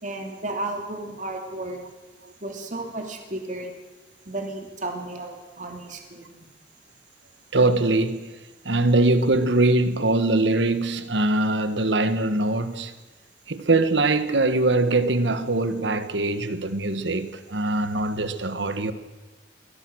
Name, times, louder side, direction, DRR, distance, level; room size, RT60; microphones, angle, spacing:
voice 1, 0.0-1.8 2.4-3.7 4.3-6.3, right 2 dB, 45° right, 2.9 m, -33 dB
voice 2, 7.5-8.3 8.6-12.9 13.5-18.9, right 2 dB, 75° right, 1.4 m, -22 dB
23.5 x 17.5 x 6.3 m
head